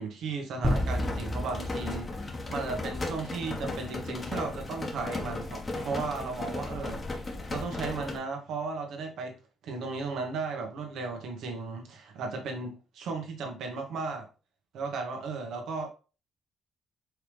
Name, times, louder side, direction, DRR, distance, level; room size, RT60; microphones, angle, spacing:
voice 1, 0.0-9.4 9.6-14.3 14.7-15.9, right 4 dB, 75° right, 1.4 m, -35 dB
sound 1, 0.6-8.2, left 2 dB, 30° left, 1.1 m, -36 dB
sound 2, 0.6-3.2, equal, 5° right, 1.3 m, -32 dB
4.7 x 3.4 x 3.3 m
cardioid pair, 90°, 0 cm